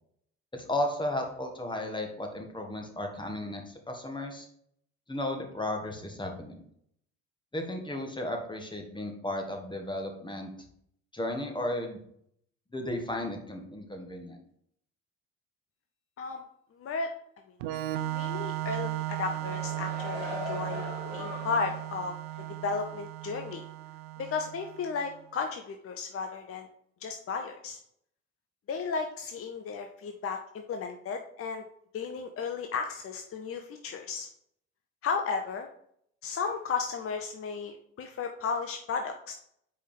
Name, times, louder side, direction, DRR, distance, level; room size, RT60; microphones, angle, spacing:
voice 1, 0.5-4.5 5.1-6.6 7.5-10.5 11.1-12.0 12.7-14.4, left 1 dB, 15° left, 3 dB, 1.6 m, -34 dB
voice 2, 16.8-17.1 18.1-22.1 22.6-23.6 24.2-26.7 27.0-27.8 28.7-31.6 31.9-34.3 35.0-35.7 36.2-39.3, left 5 dB, 40° left, 5 dB, 0.8 m, -34 dB
Organ, 17.6-25.1, right 16 dB, 70° right, 0.6 m, -36 dB
sound 1, 19.2-21.9 22.3-22.5, left 3 dB, 55° left, 3.0 m, -40 dB
4.9 x 4.7 x 5.2 m, 0.69 s
hypercardioid pair, 55°, 35 cm